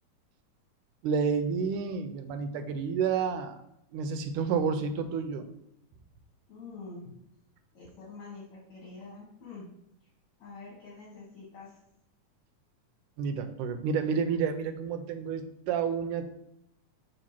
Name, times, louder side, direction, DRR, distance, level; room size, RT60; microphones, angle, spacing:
voice 1, 1.0-3.6 3.9-5.5 13.2-16.2, right 6 dB, 85° right, 8 dB, 2.1 m, -30 dB
voice 2, 6.5-7.2 7.7-9.7 10.4-11.8, left 3 dB, 65° left, -6 dB, 2.8 m, -46 dB
5.1 x 4.5 x 5.8 m, 0.80 s
omnidirectional pair, 3.7 m